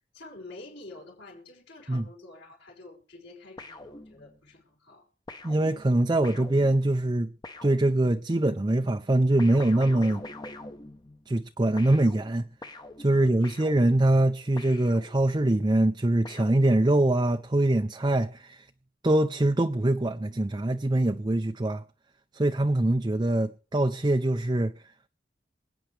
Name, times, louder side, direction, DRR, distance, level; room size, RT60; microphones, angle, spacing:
voice 1, 0.1-5.1 13.1-13.5, left 2 dB, 65° left, 5.6 m, -48 dB
sound 1, 3.6-4.6 5.3-8.4 9.4-11.5 11.8-15.5 16.2-17.2, left 2 dB, 25° left, 0.9 m, -45 dB
voice 2, 5.4-7.3 7.6-10.2 11.3-12.5 13.0-18.7 19.0-21.8 22.3-24.7, right 1 dB, 25° right, 0.5 m, -23 dB
27.0 x 9.1 x 3.3 m
head